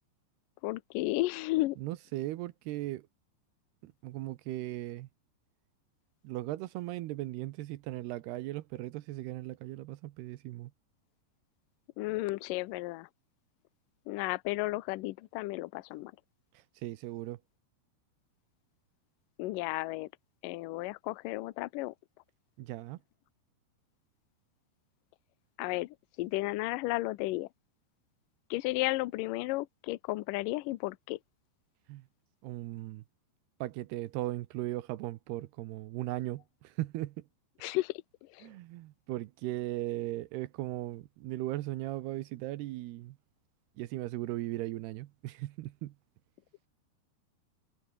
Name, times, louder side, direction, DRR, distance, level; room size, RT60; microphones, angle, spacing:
voice 1, 0.6-1.8 12.0-13.1 14.1-16.1 19.4-20.1 20.4-21.9 25.6-27.5 28.5-31.2 37.6-38.5, left 19 dB, 85° left, 1.9 m, -33 dB
voice 2, 1.8-3.1 3.8-5.1 6.2-10.7 16.5-17.4 22.6-23.0 31.9-32.1 32.4-33.0 33.6-37.3 38.4-43.2 43.8-45.9, right 16 dB, 80° right, 2.8 m, -38 dB
omnidirectional pair, 4.9 m